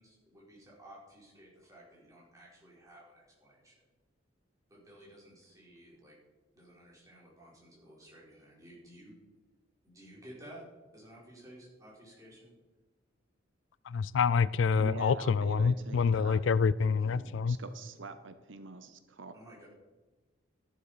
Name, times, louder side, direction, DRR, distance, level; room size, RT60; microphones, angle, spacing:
voice 1, 0.0-3.8 4.7-6.2 6.5-9.1 9.8-10.6 10.9-12.5 17.0-17.5 19.3-19.7, right 1 dB, 15° right, -5 dB, 5.1 m, -54 dB
voice 2, 13.9-17.6, left 5 dB, 70° left, 18 dB, 0.4 m, -27 dB
voice 3, 14.8-16.4 17.5-19.3, right 3 dB, 70° right, 10 dB, 0.8 m, -44 dB
13.0 x 11.5 x 5.0 m, 1.2 s
head